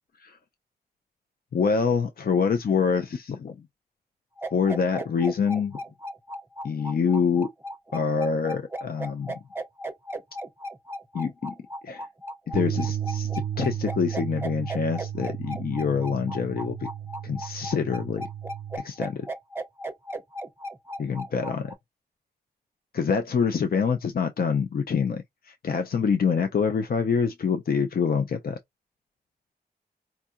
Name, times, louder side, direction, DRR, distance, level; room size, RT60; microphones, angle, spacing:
voice 1, 1.5-3.7 4.5-5.8 6.6-7.5 7.9-9.4 11.1-11.5 11.8-12.1 12.5-16.9 17.2-18.3 18.7-19.3 21.0-21.7 22.9-28.6, left 6 dB, 65° left, 0.4 m, -26 dB
sound 1, 4.4-21.7, right 1 dB, 15° right, 0.6 m, -36 dB
Bass guitar, 12.5-18.8, right 10 dB, 85° right, 0.4 m, -33 dB
4.5 x 2.7 x 2.4 m
wide cardioid pair, 85°, 17 cm